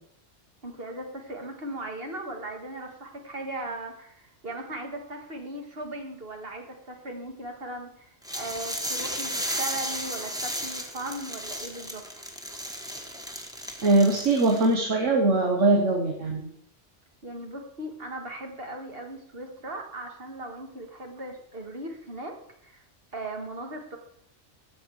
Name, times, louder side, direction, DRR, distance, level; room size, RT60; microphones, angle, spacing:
voice 1, 0.6-12.1 17.2-22.4 22.6-22.8 23.1-24.0, right 1 dB, 55° right, 3 dB, 1.8 m, -38 dB
sound 1, 8.2-14.7, equal, 5° right, 1.2 m, -34 dB
voice 2, 13.8-16.5, right 2 dB, 90° right, 1 dB, 1.6 m, -22 dB
15.0 x 6.2 x 4.6 m, 0.72 s
omnidirectional pair, 1.2 m